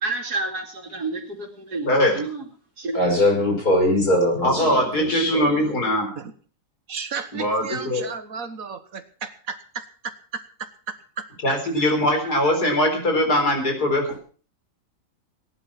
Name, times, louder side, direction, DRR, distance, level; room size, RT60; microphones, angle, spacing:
voice 1, 0.0-2.4 2.8-3.0, right 3 dB, 90° right, 4 dB, 3.2 m, -30 dB
voice 2, 1.8-2.2 4.4-6.1 7.3-8.0 11.4-14.2, left 1 dB, 85° left, 4 dB, 4.8 m, -21 dB
voice 3, 2.9-5.8, left 1 dB, 65° left, 2 dB, 6.5 m, -22 dB
voice 4, 6.9-11.3, right 5 dB, 65° right, 10 dB, 1.8 m, -34 dB
18.5 x 10.5 x 6.0 m, 0.42 s
omnidirectional pair, 1.6 m